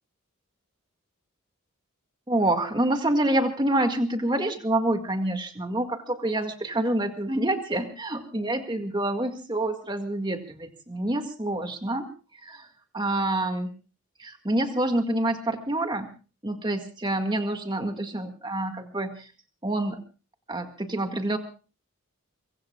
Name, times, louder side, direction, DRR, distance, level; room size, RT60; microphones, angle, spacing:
voice 1, 2.3-12.1 12.4-12.7 12.9-13.7 14.2-16.1 16.4-19.3 19.6-20.0 20.5-21.4, right 1 dB, 20° right, 5 dB, 1.9 m, -27 dB
25.0 x 24.0 x 2.4 m, 0.36 s
head